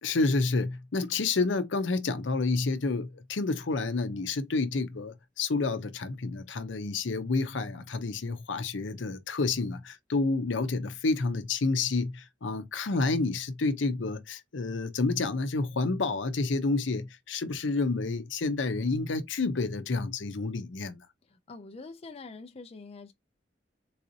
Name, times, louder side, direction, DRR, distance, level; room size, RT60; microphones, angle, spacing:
voice 1, 0.0-21.0, left 3 dB, 85° left, 0.6 m, -29 dB
voice 2, 21.5-23.1, left 3 dB, 35° left, 0.4 m, -44 dB
4.0 x 2.6 x 2.7 m
head